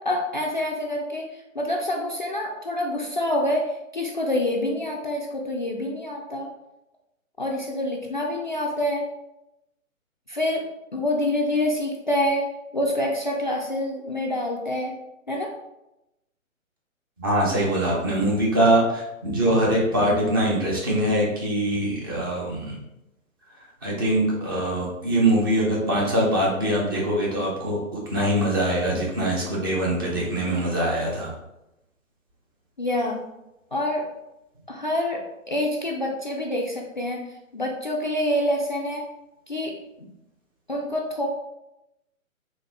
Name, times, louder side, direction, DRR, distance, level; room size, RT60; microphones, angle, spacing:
voice 1, 0.0-6.5 7.4-9.0 10.3-10.6 10.9-12.4 12.7-14.9 15.3-15.5 32.8-33.2 33.7-34.0 34.7-35.2 35.5-37.2 37.5-39.0 39.5-39.7 40.7-41.3, left 1 dB, 35° left, -1 dB, 0.4 m, -26 dB
voice 2, 17.2-22.8 23.8-31.3, right 1 dB, 15° right, -4 dB, 0.6 m, -23 dB
4.1 x 3.3 x 3.4 m, 0.91 s
figure-of-eight pair, 130°, 41 cm